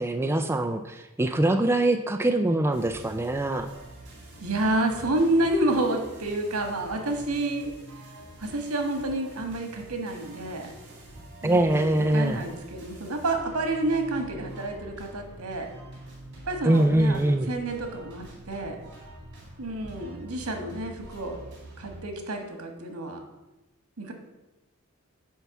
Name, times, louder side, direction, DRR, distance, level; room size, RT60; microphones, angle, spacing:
voice 1, 0.0-3.7 11.4-12.5 16.6-17.5, right 1 dB, 10° right, 5 dB, 0.4 m, -23 dB
sound 1, 2.7-22.0, right 1 dB, 55° right, 3.4 m, -46 dB
voice 2, 4.4-7.7 8.4-10.7 11.4-15.7 16.5-18.8 19.6-21.4 21.8-23.2 24.0-24.1, right 2 dB, 80° right, 4 dB, 1.5 m, -29 dB
10.0 x 3.5 x 7.0 m, 1.0 s
head